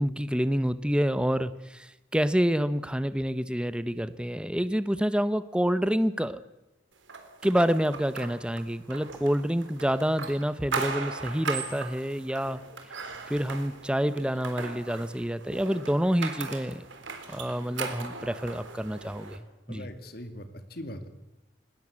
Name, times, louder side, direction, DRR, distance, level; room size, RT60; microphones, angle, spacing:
voice 1, 0.0-6.4 7.4-12.6 13.3-16.9 17.3-19.8, equal, 5° right, 14 dB, 0.8 m, -28 dB
sound 1, 7.1-19.4, right 4 dB, 90° right, 3.8 m, -38 dB
voice 2, 19.7-21.1, left 1 dB, 55° left, 8 dB, 2.3 m, -41 dB
20.5 x 20.0 x 8.6 m, 0.94 s
head